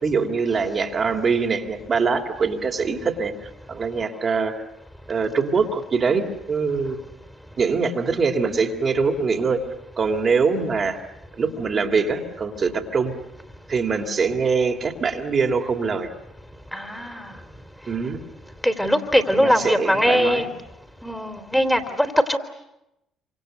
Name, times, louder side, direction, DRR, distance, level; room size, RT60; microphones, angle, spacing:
voice 1, 0.0-3.3 3.7-4.5 5.1-7.0 7.6-9.6 10.0-11.0 11.4-13.1 13.7-16.1 17.9-18.2 19.4-20.5, right 5 dB, 45° right, 2 dB, 3.1 m, -23 dB
voice 2, 16.7-17.3 18.6-20.5 21.0-22.4, equal, 5° left, 7 dB, 3.2 m, -21 dB
27.0 x 26.0 x 8.1 m, 0.88 s
hypercardioid pair, 50°, 0 cm